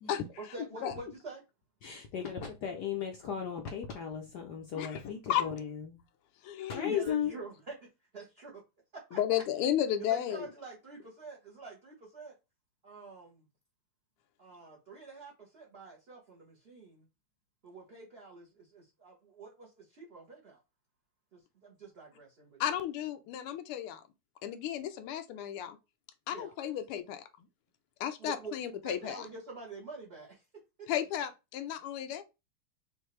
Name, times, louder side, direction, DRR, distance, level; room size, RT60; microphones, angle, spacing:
voice 1, 0.4-1.4 6.8-7.7 8.1-8.6 9.1-9.4 10.0-12.3 12.8-13.5 14.4-17.1 17.6-20.6 21.3-22.8 26.3-26.5 28.2-28.5 28.8-30.4, right 3 dB, 40° right, 1.0 m, -47 dB
voice 2, 1.8-6.0 6.7-7.4, left 8 dB, 70° left, 1.0 m, -36 dB
voice 3, 6.4-6.9 9.1-10.5 22.6-24.0 24.4-25.8 26.3-27.3 28.0-29.3 30.9-32.2, left 10 dB, 85° left, 1.5 m, -33 dB
5.6 x 2.6 x 3.1 m
omnidirectional pair, 2.4 m